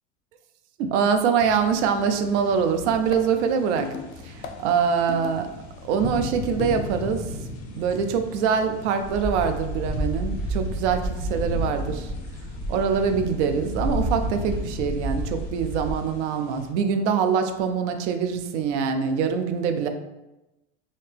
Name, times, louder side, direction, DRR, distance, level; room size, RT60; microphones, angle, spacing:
voice 1, 0.8-3.9 4.2-5.4 5.8-7.3 7.8-12.1 12.7-19.9, right 6 dB, 70° right, 7 dB, 0.5 m, -24 dB
sound 1, 1.4-16.7, left 2 dB, 40° left, 0.8 m, -38 dB
sound 2, 2.9-5.6 6.6-7.1, left 6 dB, 85° left, 0.5 m, -37 dB
sound 3, 9.0-15.9, equal, 5° right, 0.8 m, -30 dB
2.8 x 2.7 x 3.4 m, 0.98 s
hypercardioid pair, 100°, 36 cm